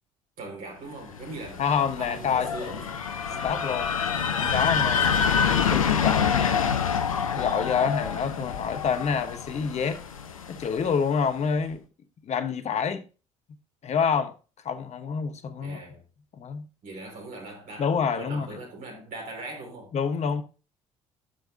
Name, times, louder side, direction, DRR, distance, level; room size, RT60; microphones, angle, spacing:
voice 1, 0.4-1.6 2.0-2.9 3.3-3.5 15.6-16.0 16.8-19.9, right 2 dB, 55° right, 4.6 m, -40 dB
sound 1, 1.2-11.0, left 7 dB, 85° left, 0.7 m, -27 dB
voice 2, 1.6-2.5 3.4-3.9 4.4-5.1 5.4-6.7 7.3-10.0 10.5-11.8 12.2-13.0 13.8-14.3 14.6-15.8 16.4-16.7 17.8-18.6 19.9-20.4, left 6 dB, 40° left, 1.1 m, -27 dB
14.0 x 5.8 x 2.6 m
figure-of-eight pair, 55°, 17 cm